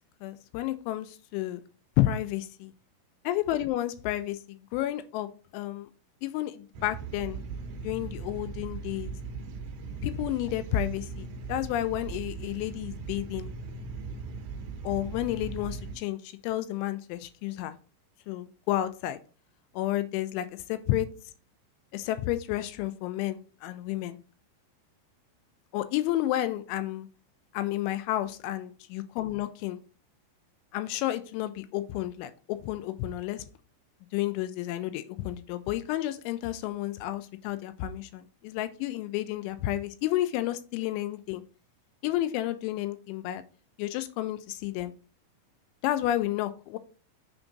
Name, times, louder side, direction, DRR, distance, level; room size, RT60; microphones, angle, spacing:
voice 1, 0.2-1.6 2.0-2.7 3.2-5.9 6.2-7.4 7.8-9.1 10.0-13.5 14.8-17.7 18.3-19.2 19.7-21.1 21.9-24.2 25.7-27.1 27.6-29.8 30.7-33.5 34.1-41.4 42.0-43.4 43.8-44.9 45.8-46.8, left 14 dB, 85° left, 11 dB, 2.8 m, -31 dB
sound 1, 6.7-16.0, right 4 dB, 90° right, 2.1 m, -39 dB
6.9 x 3.5 x 3.9 m, 0.38 s
omnidirectional pair, 5.6 m